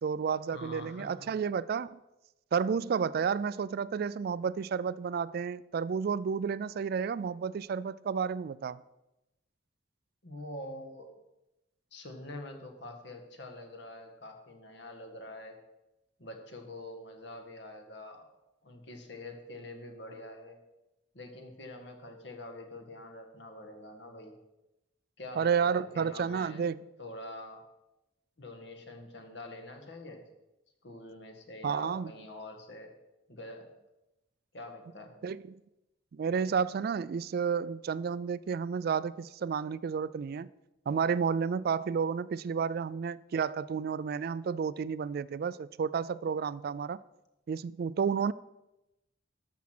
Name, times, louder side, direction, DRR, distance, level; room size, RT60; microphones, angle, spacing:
voice 1, 0.0-2.0 2.5-8.8 25.4-26.8 31.6-32.1 35.2-35.6 36.1-40.5 40.9-47.0 47.5-48.3, right 6 dB, 55° right, 0.3 m, -31 dB
voice 2, 0.5-1.3 10.2-11.1 11.9-15.6 16.2-18.3 18.6-20.6 21.1-24.4 25.2-26.6 27.0-27.6 28.4-30.3 30.8-32.9 33.3-33.7 34.5-35.1, left 1 dB, 65° left, 1.7 m, -45 dB
13.0 x 6.2 x 6.0 m
head